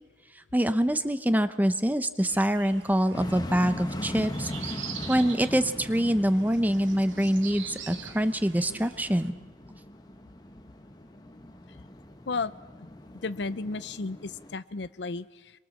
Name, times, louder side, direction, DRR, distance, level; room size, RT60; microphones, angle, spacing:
voice 1, 0.5-9.4, equal, 10° right, 11 dB, 0.9 m, -25 dB
sound 1, 2.2-9.3, right 7 dB, 80° right, 2.2 m, -44 dB
sound 2, 3.1-14.6, left 1 dB, 20° left, 1.1 m, -40 dB
voice 2, 13.2-15.5, left 3 dB, 65° left, 15 dB, 0.7 m, -33 dB
26.0 x 23.0 x 7.3 m, 1.3 s
head